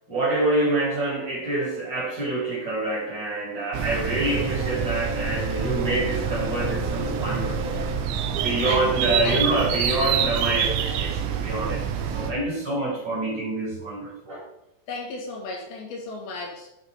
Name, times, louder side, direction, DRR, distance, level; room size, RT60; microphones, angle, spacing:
voice 1, 0.1-7.8 8.4-11.8 12.1-14.4, right 2 dB, 35° right, -5 dB, 1.9 m, -26 dB
sound 1, 3.7-12.3, right 8 dB, 90° right, 3.0 m, -27 dB
sound 2, 4.2-8.4, left 4 dB, 60° right, 1.9 m, -36 dB
voice 2, 8.6-9.5 14.9-16.7, left 3 dB, 70° left, -1 dB, 3.1 m, -33 dB
12.0 x 4.1 x 3.3 m, 0.88 s
omnidirectional pair, 5.0 m